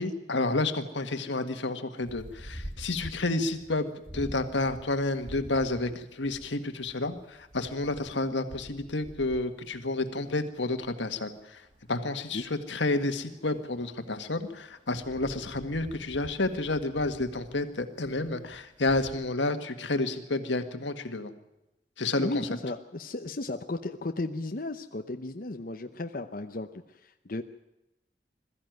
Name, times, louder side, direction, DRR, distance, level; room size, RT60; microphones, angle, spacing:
voice 1, 0.0-11.6 11.9-21.3 22.0-22.3, left 2 dB, 90° left, 8 dB, 1.7 m, -30 dB
sound 1, 2.0-19.3, equal, 30° right, 2.4 m, -47 dB
voice 2, 22.2-27.4, left 2 dB, 50° left, 6 dB, 0.8 m, -35 dB
21.5 x 14.0 x 9.3 m, 0.92 s
head